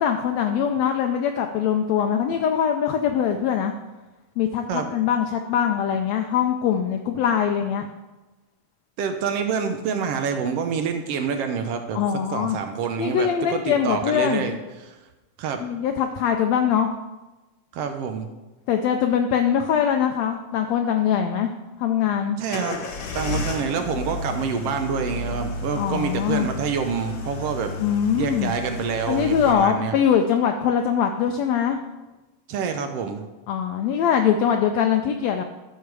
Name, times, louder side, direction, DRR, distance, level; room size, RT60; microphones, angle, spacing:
voice 1, 0.0-3.7 4.4-7.9 11.9-12.6 13.0-14.5 15.6-16.9 18.7-21.5 21.8-22.4 25.8-26.5 27.8-28.5 29.1-31.8 33.5-35.4, left 8 dB, 80° left, 5 dB, 1.6 m, -22 dB
voice 2, 9.0-12.0 12.3-15.0 15.4-15.7 17.7-18.3 22.4-22.9 23.1-27.7 28.2-29.9 32.5-33.2, right 6 dB, 75° right, 6 dB, 1.4 m, -27 dB
sound 1, 22.5-29.5, left 3 dB, 65° left, 1.2 m, -32 dB
11.0 x 6.7 x 4.7 m, 1.1 s
omnidirectional pair, 3.5 m